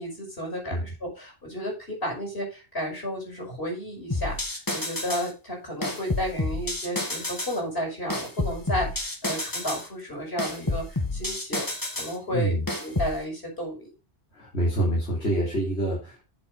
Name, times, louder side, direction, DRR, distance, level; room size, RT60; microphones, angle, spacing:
voice 1, 0.0-10.8 11.1-11.7 12.0-13.9, equal, 65° left, 0 dB, 5.8 m, -32 dB
sound 1, 4.1-5.3 5.8-7.6 8.1-9.9 10.4-12.2 12.7-13.2, left 2 dB, 20° left, 1.6 m, -30 dB
voice 2, 12.3-12.7 14.3-16.2, right 1 dB, 85° left, -4 dB, 3.3 m, -26 dB
7.9 x 7.3 x 5.3 m, 0.30 s
omnidirectional pair, 1.1 m